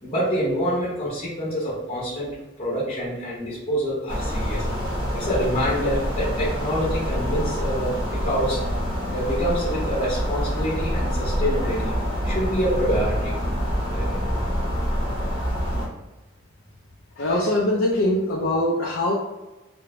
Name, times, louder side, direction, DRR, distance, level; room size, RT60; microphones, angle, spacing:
voice 1, 0.0-2.3 2.6-4.6 5.1-8.6 9.1-11.9 12.2-13.3 13.9-14.3, equal, 30° left, -7 dB, 0.7 m, -26 dB
sound 1, 4.1-15.9, equal, 25° right, 0.7 m, -26 dB
voice 2, 17.2-19.1, left 1 dB, 75° left, -4 dB, 0.4 m, -22 dB
2.4 x 2.0 x 2.9 m, 1.1 s
head